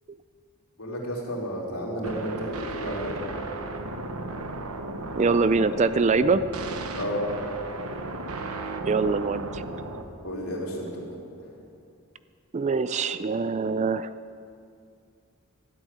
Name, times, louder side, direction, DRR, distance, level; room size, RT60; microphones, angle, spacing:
voice 1, 0.8-3.2 6.9-7.2 10.2-11.1 11.4-11.5, equal, 80° left, -4 dB, 3.5 m, -32 dB
sound 1, 2.0-10.0, right 2 dB, 80° right, 1.1 m, -35 dB
voice 2, 5.2-6.5 8.9-9.6 12.5-14.1, right 4 dB, 30° right, 14 dB, 0.3 m, -23 dB
13.0 x 8.0 x 10.0 m, 2.4 s
head